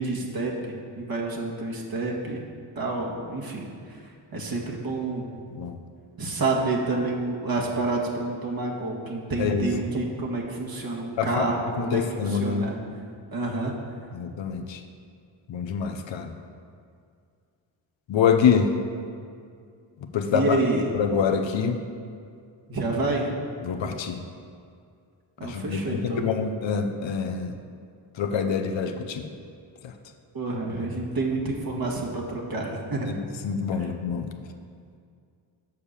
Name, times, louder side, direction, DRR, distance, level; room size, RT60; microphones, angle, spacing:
voice 1, 0.0-2.4 2.8-3.7 4.3-5.3 6.2-12.8 13.3-13.7 20.3-20.9 22.7-23.3 25.4-26.3 30.3-33.1 33.8-33.9, right 2 dB, 45° right, -2 dB, 1.8 m, -28 dB
voice 2, 11.8-12.7 14.1-14.8 15.5-16.3 18.1-18.7 20.1-20.6 20.9-21.8 23.6-24.2 25.4-27.5 28.2-29.3 33.0-33.1 33.4-34.3, left 6 dB, 65° left, 6 dB, 0.8 m, -25 dB
6.8 x 5.4 x 6.7 m, 2.3 s
supercardioid pair, 50°, 48 cm